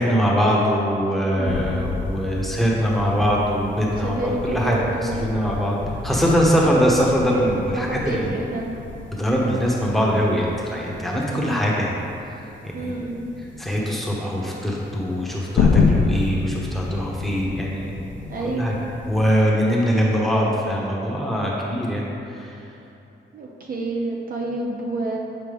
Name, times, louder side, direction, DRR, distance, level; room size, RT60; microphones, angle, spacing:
voice 1, 0.0-5.8 6.0-8.3 9.2-12.0 12.2-12.9 13.6-17.9 18.5-18.7 19.1-22.6, equal, ahead, -4 dB, 1.2 m, -22 dB
voice 2, 1.3-1.7 4.0-5.2 7.7-8.7 11.3-11.6 12.7-13.3 18.3-18.8 23.3-25.2, right 2 dB, 50° right, -2 dB, 0.7 m, -28 dB
sound 1, 1.4-19.3, left 4 dB, 75° left, 0.7 m, -29 dB
7.9 x 4.5 x 3.5 m, 2.9 s
cardioid pair, 95°, 19 cm